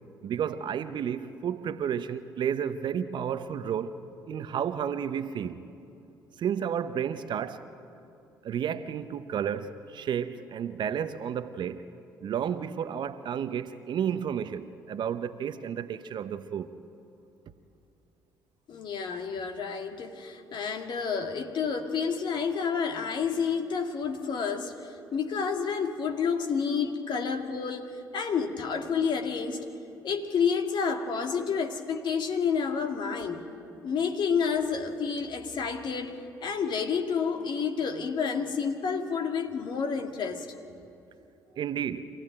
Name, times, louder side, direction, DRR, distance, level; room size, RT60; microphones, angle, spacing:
voice 1, 0.2-3.9 4.3-5.6 6.4-7.6 8.4-11.8 12.2-16.7 41.6-42.0, right 8 dB, 50° right, 12 dB, 1.0 m, -31 dB
voice 2, 18.7-24.8 25.1-29.6 30.0-33.4 33.8-40.5, left 6 dB, 50° left, 5 dB, 2.1 m, -29 dB
25.5 x 16.5 x 9.0 m, 2.7 s
figure-of-eight pair, 50°, 10 cm